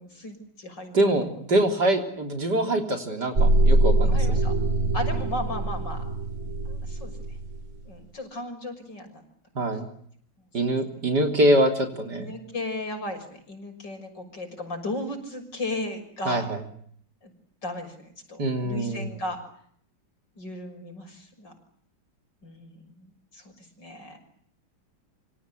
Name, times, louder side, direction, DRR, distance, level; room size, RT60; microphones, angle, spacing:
voice 1, 0.0-1.0 4.1-4.5 4.9-6.0 6.7-7.1 7.8-9.2 12.2-16.5 17.2-17.3 17.6-17.9 18.3-19.4 20.4-21.5 22.4-23.4 23.8-24.2, left 1 dB, 60° left, 6 dB, 7.1 m, -35 dB
voice 2, 0.9-4.4 9.6-9.9 10.5-12.3 16.3-16.6 18.4-19.1, right 1 dB, 55° right, 5 dB, 4.1 m, -24 dB
sound 1, 3.3-7.6, right 1 dB, 35° right, 4.8 m, -23 dB
27.5 x 26.0 x 8.0 m, 0.65 s
omnidirectional pair, 2.2 m